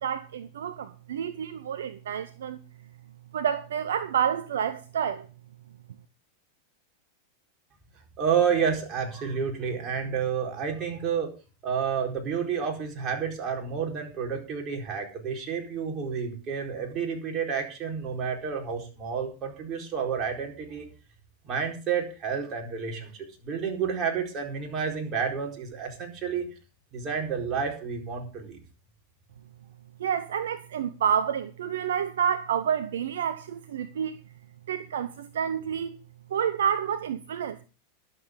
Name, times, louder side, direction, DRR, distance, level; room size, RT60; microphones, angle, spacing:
voice 1, 0.0-2.6 3.3-5.3 30.0-34.2 34.7-36.0 36.3-37.7, right 8 dB, 60° right, 0.7 m, -29 dB
voice 2, 8.2-11.3 11.6-20.9 21.4-26.5 26.9-28.6, right 6 dB, 30° right, 4.5 m, -30 dB
22.0 x 7.6 x 3.8 m
figure-of-eight pair, 90°, 0 cm